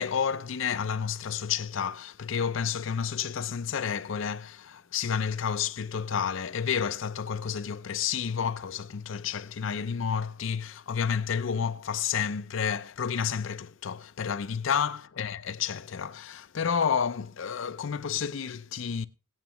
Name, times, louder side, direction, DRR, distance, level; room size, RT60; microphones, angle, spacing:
voice 1, 0.0-19.1, left 7 dB, 65° left, 0.5 m, -30 dB
17.5 x 9.0 x 3.0 m
head